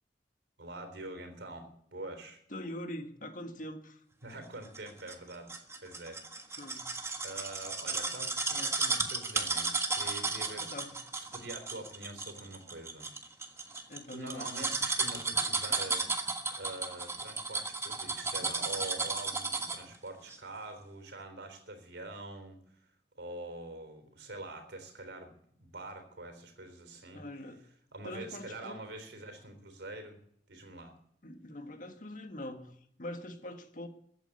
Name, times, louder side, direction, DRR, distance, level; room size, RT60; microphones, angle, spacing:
voice 1, 0.6-2.4 4.2-6.5 7.2-10.7 11.2-13.1 14.1-16.3 16.5-22.6 23.2-27.3 27.9-30.2 30.5-30.9, right 2 dB, 80° right, 7 dB, 3.7 m, -45 dB
voice 2, 2.5-4.0 6.6-6.9 10.6-10.9 13.9-14.5 27.1-27.6 28.0-28.8 31.2-33.9, left 1 dB, 50° left, 6 dB, 1.8 m, -43 dB
sound 1, 4.8-19.9 20.3-20.4, right 3 dB, 15° right, 1.5 m, -34 dB
15.0 x 8.8 x 9.8 m, 0.67 s
head